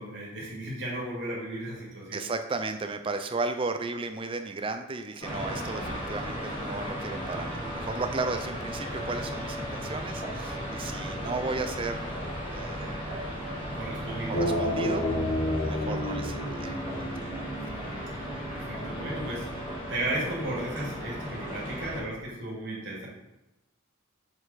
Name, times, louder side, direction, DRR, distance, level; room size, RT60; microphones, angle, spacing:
voice 1, 0.0-2.2 7.3-7.4 13.7-14.4 15.9-16.0 18.5-23.1, right 1 dB, 55° right, -5 dB, 2.2 m, -35 dB
voice 2, 2.1-12.1 12.5-13.5 14.3-15.1 15.6-17.1, right 3 dB, 25° right, 7 dB, 0.4 m, -34 dB
sound 1, 5.2-22.0, equal, 25° left, 1.5 m, -36 dB
sound 2, 14.3-19.3, left 1 dB, 45° left, 0.9 m, -31 dB
6.9 x 4.4 x 4.0 m, 0.98 s
head